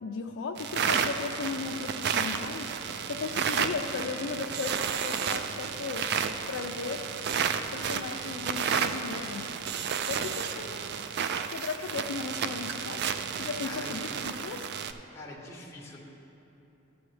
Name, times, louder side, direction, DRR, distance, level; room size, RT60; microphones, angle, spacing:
voice 1, 0.0-2.8 3.1-6.1 6.5-7.1 7.7-9.5 10.1-11.0 11.5-13.1 13.4-14.7, left 4 dB, 65° left, 1 dB, 0.4 m, -36 dB
sound 1, 0.6-14.9, right 7 dB, 55° right, 0.3 m, -32 dB
voice 2, 13.6-14.0 15.1-16.0, left 2 dB, 15° left, -4 dB, 1.0 m, -44 dB
13.0 x 7.1 x 3.2 m, 2.9 s
head